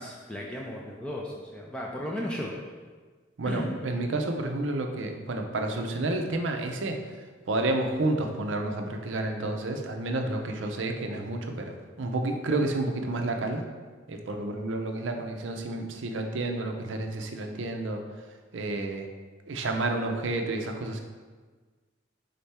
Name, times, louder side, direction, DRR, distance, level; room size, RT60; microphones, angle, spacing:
voice 1, 0.0-2.5 3.5-3.8 12.5-12.6, equal, 5° left, -3 dB, 0.4 m, -35 dB
voice 2, 3.4-7.0 7.5-13.6 14.1-18.0 18.5-19.1 19.5-21.0, right 2 dB, 70° right, 4 dB, 0.5 m, -30 dB
4.2 x 3.7 x 3.4 m, 1.4 s
head